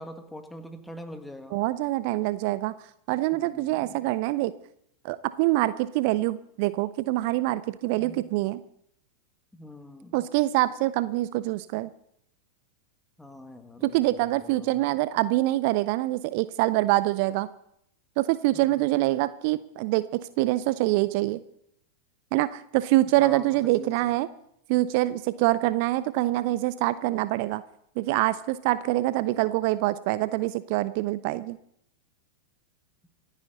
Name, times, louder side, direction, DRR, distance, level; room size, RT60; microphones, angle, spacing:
voice 1, 0.0-1.6 3.3-4.1 7.9-8.3 9.5-10.3 13.2-14.9 18.5-18.9 23.2-24.2, left 1 dB, 5° left, 7 dB, 1.7 m, -44 dB
voice 2, 1.5-2.7 3.1-4.5 5.0-8.6 10.1-11.9 13.8-17.5 18.2-21.4 22.3-24.3 24.7-27.6 28.0-31.6, right 17 dB, 45° right, 16 dB, 0.5 m, -25 dB
26.5 x 9.9 x 4.0 m, 0.74 s
figure-of-eight pair, 90°, 0 cm